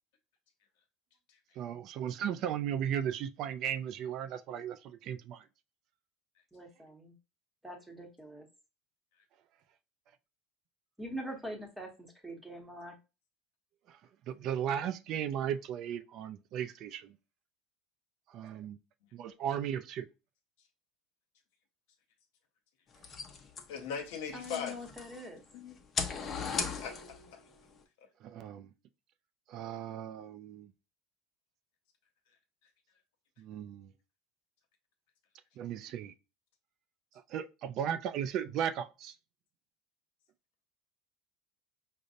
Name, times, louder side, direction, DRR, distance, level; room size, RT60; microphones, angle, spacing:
voice 1, 1.6-5.4 13.9-14.0 14.3-17.1 18.3-18.8 19.1-20.1 28.2-28.7 29.5-30.7 33.4-33.9 35.6-36.1 37.3-39.1, right 9 dB, 50° right, 0.3 m, -36 dB
voice 2, 6.5-7.2 7.6-8.5 11.0-12.9 24.3-25.4, equal, 5° right, 0.8 m, -43 dB
sound 1, 22.9-25.3 25.7-27.3, left 5 dB, 30° left, 0.6 m, -37 dB
voice 3, 23.7-24.8 25.5-25.7 26.8-27.4, left 7 dB, 80° left, 0.8 m, -39 dB
5.0 x 2.0 x 2.6 m
supercardioid pair, 130°, 0 cm